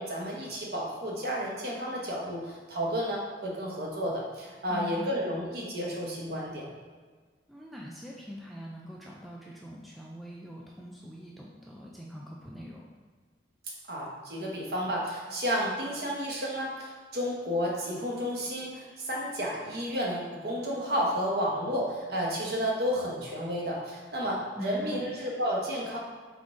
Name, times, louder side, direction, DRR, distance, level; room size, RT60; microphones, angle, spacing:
voice 1, 0.0-6.7 13.9-26.0, equal, 55° right, -3 dB, 0.9 m, -32 dB
voice 2, 4.7-5.1 7.5-12.8 24.6-25.0, equal, ahead, -4 dB, 0.3 m, -43 dB
4.6 x 3.6 x 2.5 m, 1.4 s
head